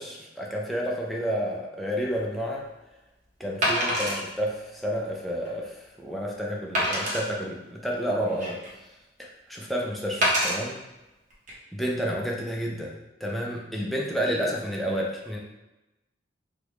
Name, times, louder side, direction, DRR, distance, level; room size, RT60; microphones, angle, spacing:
voice 1, 0.0-2.6 3.4-8.6 9.2-10.8 11.7-15.4, equal, ahead, -3 dB, 0.4 m, -30 dB
Wood, 2.0-2.2 3.6-4.2 4.8-4.9 5.4-5.5 6.7-7.2 8.0-8.8 10.2-10.6 11.3-11.5, equal, 45° right, 0.9 m, -25 dB
3.5 x 2.4 x 3.0 m, 1.0 s
head